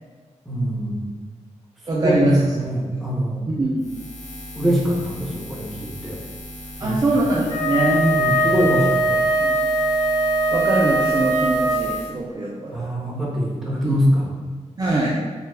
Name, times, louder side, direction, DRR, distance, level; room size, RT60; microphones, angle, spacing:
voice 1, 0.5-1.1 1.9-3.4 4.5-6.2 6.8-7.0 7.8-9.2 12.7-14.3, equal, ahead, -6 dB, 0.8 m, -23 dB
voice 2, 1.9-2.4 3.5-3.9 6.8-8.0 8.7-8.8 9.4-9.6 10.5-12.9 13.8-14.1 14.8-15.2, right 2 dB, 30° right, -5 dB, 0.3 m, -22 dB
Buzz, 3.8-12.1, left 1 dB, 65° left, 0.6 m, -38 dB
Wind instrument woodwind instrument, 7.4-12.1, right 1 dB, 25° left, 1.1 m, -21 dB
2.7 x 2.3 x 3.2 m, 1.4 s
wide cardioid pair, 115°, 12 cm